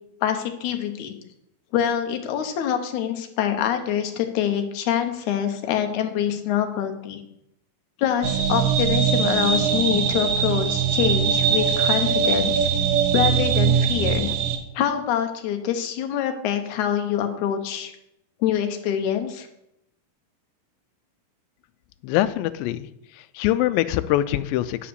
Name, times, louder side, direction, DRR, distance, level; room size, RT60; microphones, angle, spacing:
voice 1, 0.2-1.2 1.7-7.2 8.0-12.7 13.1-14.3 14.7-17.9 18.4-19.5, left 9 dB, 70° left, 6 dB, 2.2 m, -25 dB
sound 1, 8.2-14.6, right 7 dB, 75° right, 2.6 m, -21 dB
voice 2, 22.0-22.9 23.1-24.9, left 14 dB, 90° left, 14 dB, 2.3 m, -23 dB
9.9 x 4.9 x 7.0 m, 0.81 s
omnidirectional pair, 4.0 m